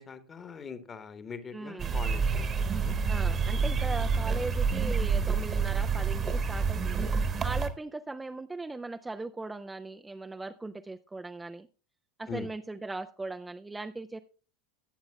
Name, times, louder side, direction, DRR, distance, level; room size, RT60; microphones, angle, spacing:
voice 1, 0.0-2.5 2.7-2.9 12.3-12.5, left 6 dB, 25° left, 11 dB, 1.2 m, -42 dB
voice 2, 1.5-2.0 3.1-7.1 7.4-11.7 12.2-14.2, right 2 dB, 10° right, 8 dB, 0.4 m, -39 dB
sound 1, 1.8-7.7, right 5 dB, 30° right, 1.1 m, -28 dB
18.0 x 7.9 x 2.2 m, 0.36 s
figure-of-eight pair, 80°, 0 cm